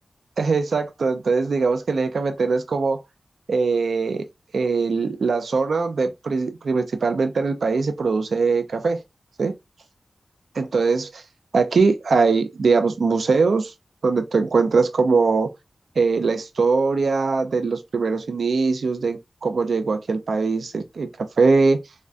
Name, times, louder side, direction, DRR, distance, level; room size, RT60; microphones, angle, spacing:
voice 1, 0.4-3.0 3.5-4.3 4.5-9.0 9.4-9.5 10.6-11.2 11.5-13.7 14.0-15.5 16.0-21.8, right 4 dB, 85° right, 0.4 m, -21 dB
3.5 x 2.1 x 2.4 m
wide cardioid pair, 60°, 0 cm